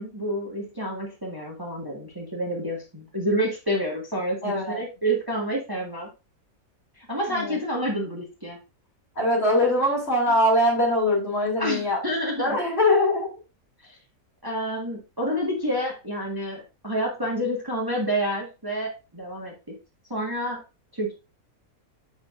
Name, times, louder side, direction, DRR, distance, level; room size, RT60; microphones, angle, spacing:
voice 1, 0.0-6.1 7.0-8.6 11.6-12.6 13.8-14.0 14.4-19.5 20.1-20.6 20.9-21.1, equal, 15° right, -2 dB, 1.6 m, -29 dB
voice 2, 4.4-4.8 7.3-7.6 9.2-12.0 12.4-13.3, left 1 dB, 45° left, -3 dB, 2.9 m, -22 dB
7.1 x 6.4 x 2.5 m, 0.29 s
omnidirectional pair, 1.5 m